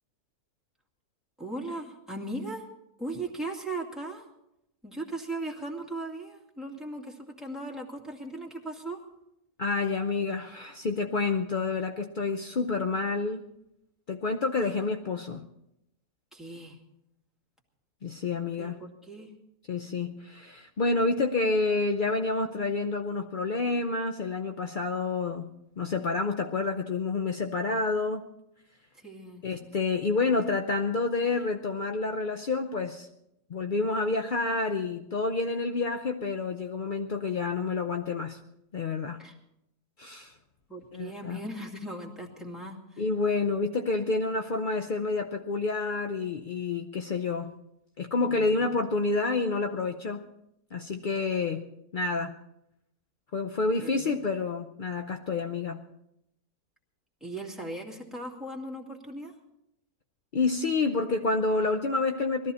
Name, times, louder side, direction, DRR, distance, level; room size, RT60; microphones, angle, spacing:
voice 1, 1.4-2.7 3.0-4.3 4.8-9.0 16.3-16.8 18.6-19.4 28.9-29.8 39.2-39.4 40.7-43.0 48.2-48.8 53.8-54.1 57.2-59.3, right 2 dB, ahead, -1 dB, 2.2 m, -38 dB
voice 2, 9.6-13.5 14.1-15.5 18.0-18.8 19.7-28.3 29.4-33.1 33.5-38.4 38.7-39.2 40.0-40.3 40.9-41.4 43.0-47.5 48.0-50.3 50.7-52.3 53.3-55.9 60.3-62.5, left 3 dB, 55° left, 6 dB, 0.5 m, -29 dB
20.5 x 14.0 x 4.2 m, 0.83 s
omnidirectional pair, 1.7 m